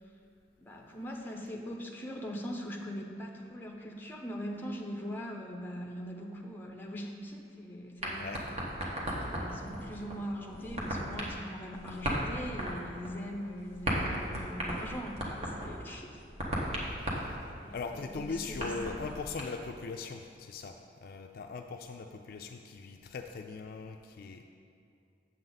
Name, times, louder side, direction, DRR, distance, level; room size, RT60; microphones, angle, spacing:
voice 1, 0.6-8.5 9.2-16.2 17.5-19.0, equal, 10° left, 1 dB, 0.7 m, -41 dB
sound 1, 8.0-19.4, equal, 35° right, 1.2 m, -37 dB
voice 2, 8.2-8.5 16.6-17.4 17.7-20.8 21.0-24.4, left 4 dB, 50° left, 4 dB, 0.3 m, -40 dB
7.7 x 7.5 x 4.0 m, 2.5 s
head